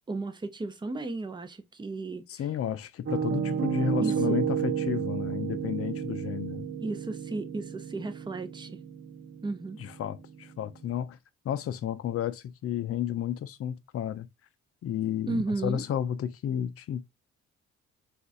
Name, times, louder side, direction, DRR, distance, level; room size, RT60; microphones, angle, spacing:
voice 1, 0.1-2.4 4.0-4.4 6.8-8.8 9.4-9.8 15.3-15.8, right 3 dB, 15° right, 0.6 m, -34 dB
voice 2, 2.3-6.7 9.8-11.2 11.4-14.3 14.8-17.0, left 10 dB, 50° left, 0.5 m, -32 dB
Piano, 3.1-10.9, right 8 dB, 40° right, 0.9 m, -32 dB
3.9 x 2.5 x 2.3 m
cardioid pair, 90°, 30 cm